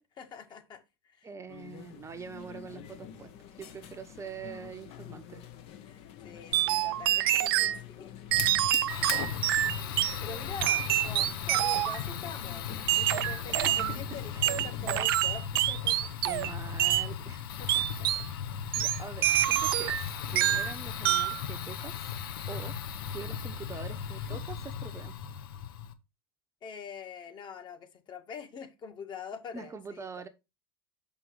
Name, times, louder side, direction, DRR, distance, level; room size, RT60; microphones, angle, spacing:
voice 1, 0.0-1.3 5.8-8.6 9.0-9.5 10.0-12.7 13.0-16.2 17.6-18.3 26.6-30.3, left 6 dB, 40° left, 2.0 m, -45 dB
voice 2, 1.2-3.3 3.6-5.5 8.7-8.8 13.5-14.6 16.2-17.5 17.8-18.1 18.8-22.0 22.5-22.8 23.1-25.2 29.5-30.3, right 5 dB, 25° right, 1.0 m, -44 dB
sound 1, 1.5-15.1, left 9 dB, 55° left, 1.4 m, -48 dB
sound 2, 6.5-7.8 8.3-10.2 10.6-12.0 12.9-14.0 14.4-16.5 16.8-17.1 17.7-18.3 18.7-20.0 20.4-20.7 21.0-21.4, right 13 dB, 75° right, 0.6 m, -27 dB
Fire, 8.3-25.9, left 8 dB, 75° left, 1.1 m, -37 dB
6.8 x 5.4 x 4.7 m
hypercardioid pair, 90°, 12 cm